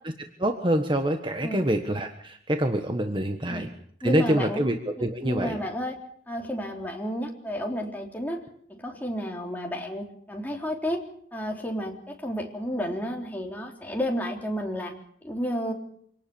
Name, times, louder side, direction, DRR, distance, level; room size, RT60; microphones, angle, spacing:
voice 1, 0.4-3.7 4.0-5.6, right 1 dB, 25° right, 5 dB, 1.4 m, -26 dB
voice 2, 4.0-4.6 5.0-6.0 6.3-8.4 8.7-11.0 11.3-14.9 15.2-15.7, equal, 10° left, 0 dB, 3.7 m, -31 dB
26.0 x 18.5 x 7.1 m, 0.64 s
head